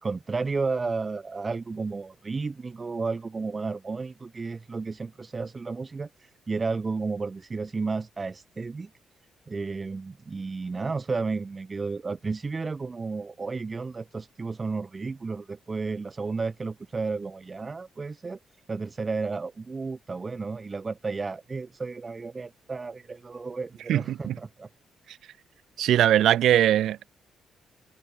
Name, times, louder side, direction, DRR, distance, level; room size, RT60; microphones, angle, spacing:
voice 1, 0.0-8.9 9.5-18.4 18.7-24.7 25.0-25.1, right 4 dB, 30° right, 1.5 m, -32 dB
voice 2, 23.9-24.4 25.8-27.2, right 12 dB, 80° right, 0.5 m, -21 dB
cardioid pair, 95°, 0 cm